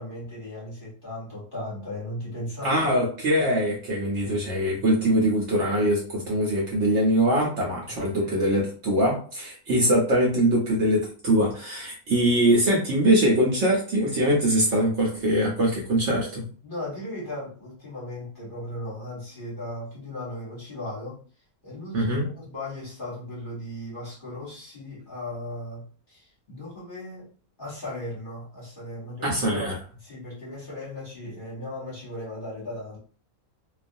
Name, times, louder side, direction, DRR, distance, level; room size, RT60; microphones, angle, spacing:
voice 1, 0.0-2.9 4.2-4.4 7.9-8.6 16.6-21.2 21.6-27.3 27.6-29.7 30.0-33.0, left 1 dB, 40° left, -6 dB, 0.9 m, -37 dB
voice 2, 2.6-16.5 21.9-22.3 29.2-29.7, right 1 dB, 60° right, -2 dB, 0.8 m, -23 dB
2.4 x 2.3 x 2.5 m, 0.40 s
omnidirectional pair, 1.6 m